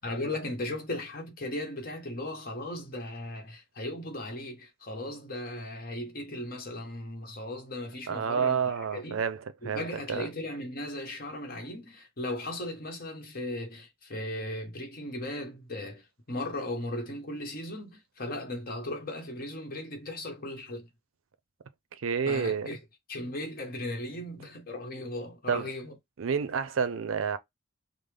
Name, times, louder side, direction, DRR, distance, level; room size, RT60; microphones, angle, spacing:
voice 1, 0.0-9.2 9.6-20.9 22.3-22.8 23.1-26.0, left 1 dB, 45° left, 1.1 m, -37 dB
voice 2, 8.1-10.3 21.9-22.7 25.5-25.7 26.2-27.4, right 6 dB, 85° right, 0.5 m, -29 dB
5.3 x 2.0 x 3.3 m
head